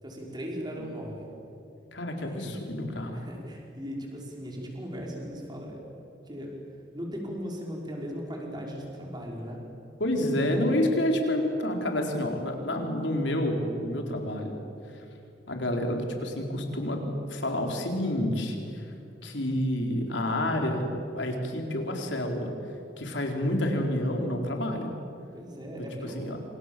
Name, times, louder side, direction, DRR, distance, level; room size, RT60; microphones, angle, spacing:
voice 1, 0.0-1.3 2.2-2.6 3.1-5.8 6.3-6.6 6.9-9.6 10.4-10.9 25.3-26.4, equal, 25° right, -1 dB, 5.4 m, -38 dB
voice 2, 1.9-3.2 10.0-14.6 15.5-17.0 17.3-18.9 19.2-20.9 21.1-22.5 23.0-24.9 25.7-25.8 26.2-26.4, left 1 dB, 85° left, 3 dB, 4.3 m, -29 dB
27.5 x 26.5 x 7.7 m, 2.7 s
head